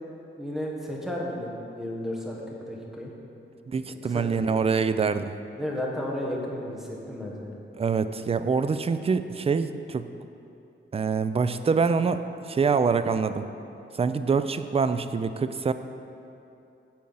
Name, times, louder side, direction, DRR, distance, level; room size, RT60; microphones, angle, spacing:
voice 1, 0.4-2.4 2.7-3.1 4.0-4.3 5.6-7.5, left 1 dB, ahead, -2 dB, 1.2 m, -33 dB
voice 2, 3.7-5.4 7.8-10.1 10.9-13.5 13.9-15.7, right 5 dB, 30° right, 11 dB, 0.4 m, -25 dB
8.5 x 7.7 x 5.5 m, 2.7 s
wide cardioid pair, 145°, 21 cm